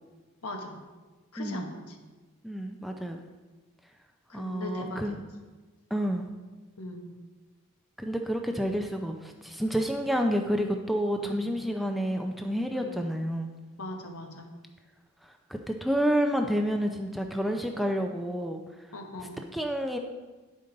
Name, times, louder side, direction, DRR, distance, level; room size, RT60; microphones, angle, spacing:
voice 1, 0.4-0.8 1.3-2.0 4.3-5.2 6.8-7.1 11.2-11.4 12.7-13.0 13.8-14.5 18.9-19.4, left 1 dB, 80° left, 3 dB, 1.1 m, -40 dB
voice 2, 1.4-1.7 2.4-3.2 4.3-5.2 5.9-6.3 8.0-13.5 15.5-18.6 19.5-20.0, equal, ahead, 3 dB, 0.4 m, -29 dB
9.4 x 5.2 x 3.8 m, 1.3 s
head